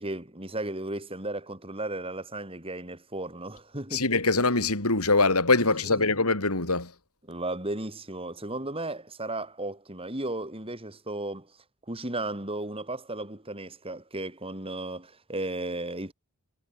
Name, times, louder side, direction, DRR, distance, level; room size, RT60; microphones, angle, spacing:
voice 1, 0.0-4.0 5.8-6.1 7.3-11.5 11.9-16.1, right 2 dB, 25° right, 6.6 m, -35 dB
voice 2, 3.9-6.9, left 3 dB, 85° left, 5.6 m, -23 dB
head